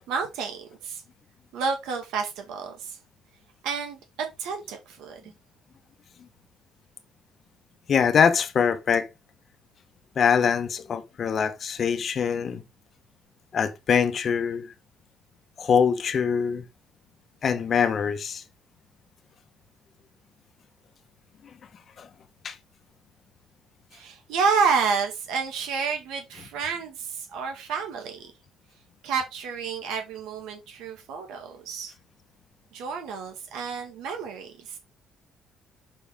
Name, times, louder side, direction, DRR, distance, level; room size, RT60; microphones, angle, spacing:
voice 1, 0.1-1.0 1.5-3.0 3.6-5.3 23.9-28.3 29.0-31.9 32.7-34.8, right 5 dB, 90° right, 2.2 m, -30 dB
voice 2, 7.9-9.1 10.2-12.6 13.5-14.7 15.6-16.6 17.4-18.4 22.0-22.1 22.4-22.6, left 7 dB, 35° left, 1.0 m, -23 dB
7.2 x 5.7 x 3.5 m
cardioid pair, 150°, 0 cm